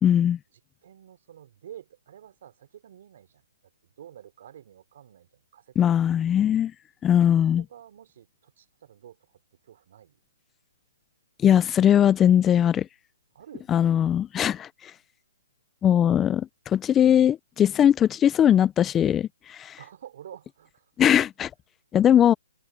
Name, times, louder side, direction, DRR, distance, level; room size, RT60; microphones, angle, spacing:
voice 1, 0.0-0.4 5.8-6.7 7.0-7.6 11.4-12.9 13.7-14.9 15.8-19.8 21.0-21.5 21.9-22.3, left 10 dB, 15° left, 0.3 m, -20 dB
voice 2, 0.8-3.4 3.8-5.8 7.5-10.2 13.3-14.0 19.8-20.9, right 10 dB, 50° right, 3.9 m, -49 dB
hypercardioid pair, 155°, 0 cm